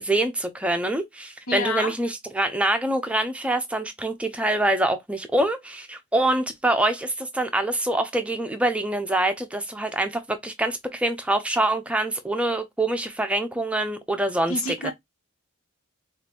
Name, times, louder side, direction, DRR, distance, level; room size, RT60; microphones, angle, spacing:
voice 1, 0.0-14.5 14.8-14.9, right 1 dB, 5° right, 0.5 m, -25 dB
voice 2, 1.5-1.9 14.5-14.9, left 2 dB, 70° left, 1.0 m, -28 dB
5.0 x 2.5 x 2.7 m
head